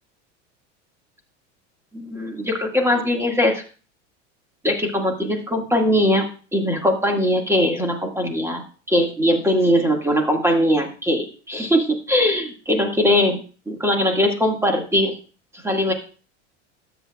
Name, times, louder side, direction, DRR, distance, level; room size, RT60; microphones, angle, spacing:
voice 1, 1.9-3.6 4.6-8.6 8.9-15.2 15.6-15.9, left 1 dB, 5° right, 2 dB, 2.0 m, -20 dB
13.0 x 8.0 x 2.4 m, 0.37 s
hypercardioid pair, 100°, 37 cm